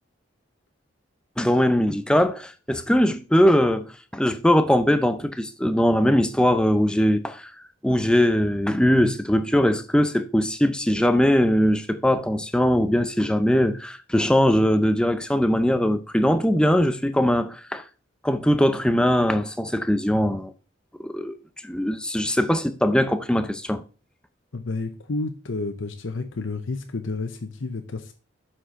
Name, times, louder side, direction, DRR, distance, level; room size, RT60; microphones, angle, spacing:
voice 1, 1.4-7.5 7.8-17.8 18.2-20.5 21.0-21.4 21.6-23.8, equal, 5° left, 0.5 m, -21 dB
voice 2, 24.5-28.1, left 3 dB, 75° left, 0.7 m, -30 dB
7.5 x 4.5 x 4.5 m
head